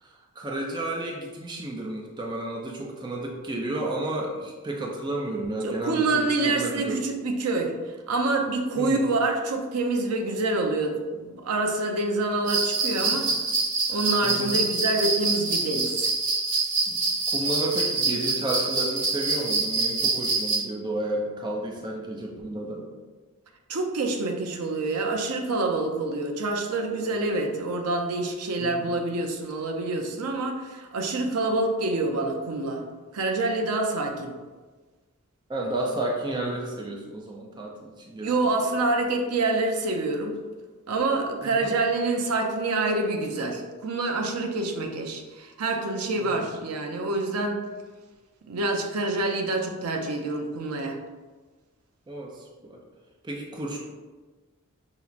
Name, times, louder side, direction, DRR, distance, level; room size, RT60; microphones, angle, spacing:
voice 1, 0.0-7.1 8.8-9.0 13.1-13.2 14.2-14.6 16.9-22.9 28.6-28.9 35.5-38.5 41.4-41.7 46.2-46.5 52.1-52.8 53.2-53.8, right 1 dB, 20° right, -1 dB, 0.4 m, -32 dB
voice 2, 5.6-7.7 8.1-13.3 13.9-16.1 23.7-32.8 33.1-34.3 38.2-40.4 40.9-47.6 48.5-51.0, right 2 dB, 85° right, 3 dB, 0.5 m, -27 dB
sound 1, 12.5-20.6, right 3 dB, 60° right, 0.9 m, -26 dB
5.6 x 2.0 x 2.4 m, 1.3 s
head